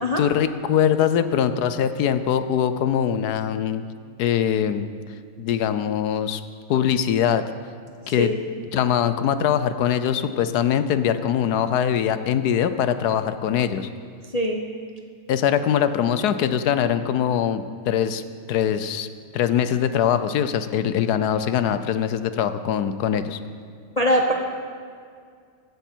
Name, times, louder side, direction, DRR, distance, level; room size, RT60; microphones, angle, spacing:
voice 1, 0.2-3.8 4.2-4.9 5.4-6.4 6.7-7.4 8.1-8.3 8.7-13.9 15.3-18.2 18.5-19.1 19.3-23.4, left 9 dB, 65° left, 11 dB, 1.1 m, -22 dB
voice 2, 24.0-24.3, equal, 30° left, 1 dB, 0.7 m, -21 dB
15.5 x 13.5 x 4.5 m, 2.1 s
omnidirectional pair, 2.0 m